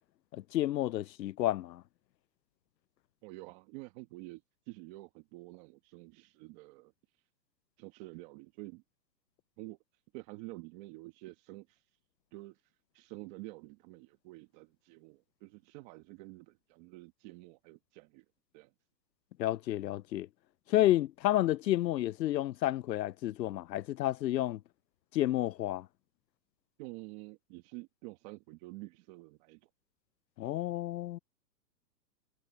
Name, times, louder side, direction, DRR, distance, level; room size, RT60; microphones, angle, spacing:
voice 1, 0.3-1.8 19.4-20.3 20.7-24.6 25.1-25.9 30.4-31.2, left 14 dB, 85° left, 0.7 m, -30 dB
voice 2, 3.2-4.4 4.7-6.9 7.8-8.8 9.6-9.8 10.1-11.8 12.3-12.6 12.9-18.2 18.5-18.7 26.8-29.7, right 21 dB, 25° right, 1.4 m, -48 dB
hypercardioid pair, 155°, 50 cm